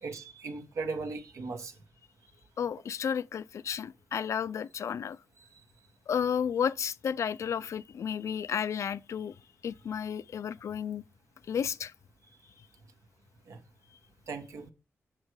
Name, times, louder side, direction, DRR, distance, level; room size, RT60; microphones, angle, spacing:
voice 1, 0.0-1.7 5.4-5.5 13.5-13.6 14.3-14.7, right 4 dB, 85° right, 1.5 m, -38 dB
voice 2, 2.6-5.2 6.1-9.3 9.6-11.0 11.5-11.9, left 7 dB, 75° left, 0.4 m, -32 dB
7.4 x 6.3 x 4.8 m
wide cardioid pair, 105°, 5 cm